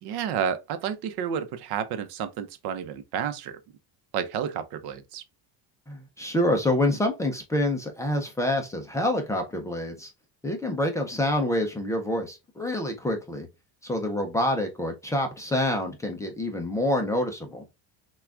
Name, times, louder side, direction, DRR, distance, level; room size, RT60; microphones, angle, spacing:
voice 1, 0.0-3.6 4.1-5.2, right 8 dB, 60° right, 0.8 m, -31 dB
voice 2, 5.9-10.1 10.4-13.5 13.8-17.6, left 1 dB, 5° left, 0.5 m, -27 dB
5.9 x 2.4 x 3.4 m
cardioid pair, 175°, 45 cm